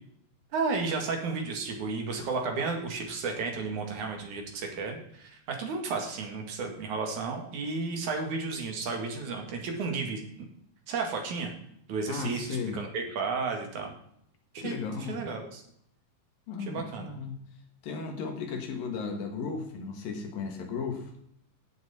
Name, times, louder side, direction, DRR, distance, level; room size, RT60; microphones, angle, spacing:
voice 1, 0.5-10.2 10.9-11.5 11.9-13.9 14.5-14.8 15.1-15.6 16.6-17.2, right 4 dB, 55° right, 3 dB, 3.1 m, -33 dB
voice 2, 12.1-12.8 14.6-15.2 16.5-17.4 17.8-21.1, left 5 dB, 65° left, 3 dB, 3.2 m, -35 dB
15.0 x 7.9 x 4.3 m, 0.70 s
omnidirectional pair, 4.6 m